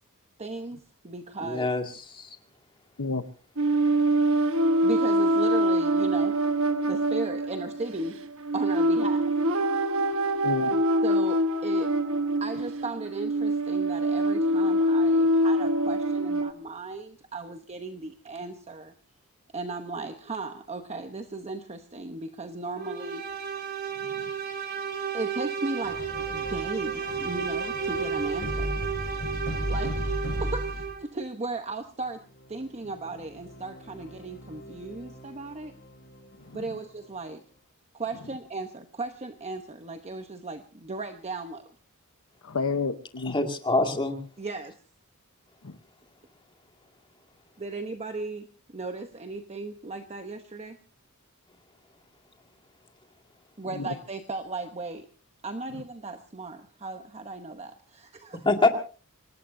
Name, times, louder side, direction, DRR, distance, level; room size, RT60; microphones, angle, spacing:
voice 1, 0.4-1.7 4.8-6.4 6.8-8.2 8.5-9.3 11.0-11.9 12.4-18.9 19.5-23.2 25.1-28.8 29.7-30.1 30.4-32.2 32.5-35.7 36.5-37.4 37.9-41.7 44.4-44.8 47.6-50.8 53.6-55.1 55.4-58.3, right 3 dB, 30° right, 7 dB, 0.9 m, -36 dB
voice 2, 1.4-2.4 43.2-44.2 58.5-58.7, left 3 dB, 20° left, 4 dB, 2.2 m, -25 dB
sound 1, 3.6-16.5, right 1 dB, 65° right, 1.2 m, -24 dB
voice 3, 10.4-10.8 24.0-24.3 36.4-36.6 42.4-43.3 45.6-45.8 53.7-53.9, left 4 dB, 70° left, 8 dB, 0.9 m, -31 dB
sound 2, 22.8-31.1, right 6 dB, 50° right, 2.5 m, -33 dB
sound 3, 25.8-31.0 32.2-37.1, equal, 50° left, 4.4 m, -37 dB
25.5 x 19.0 x 2.7 m, 0.38 s
head